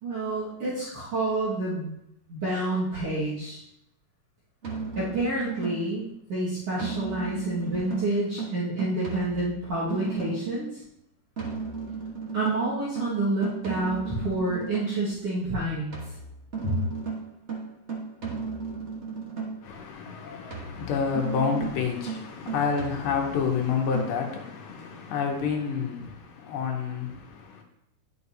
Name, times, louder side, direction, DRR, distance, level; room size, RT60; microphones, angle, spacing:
voice 1, 0.0-1.9 2.3-3.6 5.0-10.8 12.3-15.9 16.6-16.7, right 2 dB, 50° right, 2.7 m, -28 dB
sound 1, 4.6-6.0 6.8-10.6 11.4-15.0 15.9-19.7 20.5-23.5 23.9-24.1, right 5 dB, 75° right, 0.6 m, -35 dB
voice 2, 19.6-27.6, left 6 dB, 85° left, 2.9 m, -29 dB
11.0 x 6.7 x 2.8 m
omnidirectional pair, 3.7 m